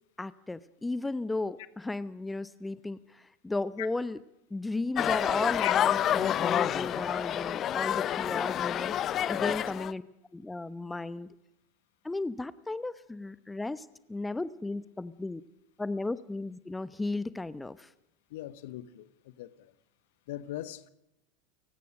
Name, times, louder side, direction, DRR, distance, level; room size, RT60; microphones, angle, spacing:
voice 1, 0.2-4.2 4.5-10.0 10.3-11.3 12.0-15.4 15.8-17.9, left 2 dB, 10° left, 1.0 m, -35 dB
sound 1, 5.0-9.9, left 11 dB, 35° left, 0.9 m, -28 dB
voice 2, 18.3-19.7 20.3-20.9, left 14 dB, 60° left, 1.3 m, -40 dB
30.0 x 16.5 x 6.4 m
figure-of-eight pair, 80°, 0 cm